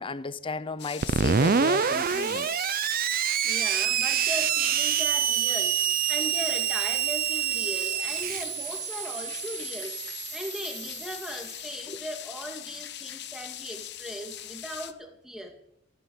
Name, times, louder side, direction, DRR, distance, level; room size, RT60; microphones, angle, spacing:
voice 1, 0.0-2.5 11.9-12.0, left 3 dB, 25° left, 0.6 m, -34 dB
sound 1, 0.8-14.9, left 11 dB, 55° left, 0.9 m, -41 dB
Screech, 1.0-11.5, right 8 dB, 45° right, 0.6 m, -27 dB
voice 2, 3.4-5.8 6.1-10.0 10.3-15.5, equal, ahead, 2.4 m, -38 dB
15.0 x 10.0 x 7.3 m
head